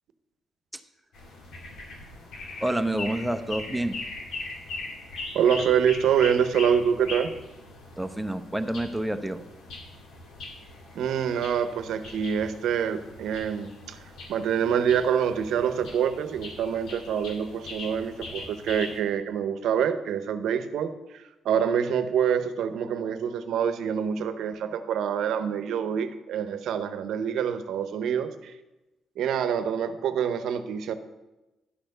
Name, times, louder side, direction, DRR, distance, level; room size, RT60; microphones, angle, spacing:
sound 1, 1.1-19.0, left 2 dB, 75° left, 1.9 m, -41 dB
voice 1, 2.6-4.0 8.0-9.4, right 1 dB, 5° right, 8 dB, 0.7 m, -28 dB
voice 2, 5.3-7.3 10.9-14.0 14.3-28.5 29.2-30.9, right 8 dB, 75° right, 10 dB, 0.7 m, -26 dB
11.5 x 4.3 x 6.7 m, 1.0 s
cardioid pair, 90°, 0 cm